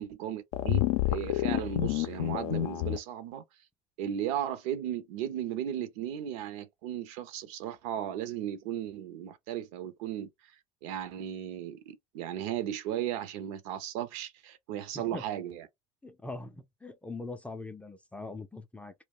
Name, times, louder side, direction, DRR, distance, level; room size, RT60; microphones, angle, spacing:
voice 1, 0.0-3.4 4.0-10.5 10.8-15.7, right 10 dB, 70° right, 0.6 m, -36 dB
sound 1, 0.5-3.0, left 14 dB, 70° left, 0.4 m, -29 dB
voice 2, 16.0-18.9, left 2 dB, 5° left, 0.4 m, -42 dB
2.2 x 2.1 x 3.6 m
hypercardioid pair, 85°, 17 cm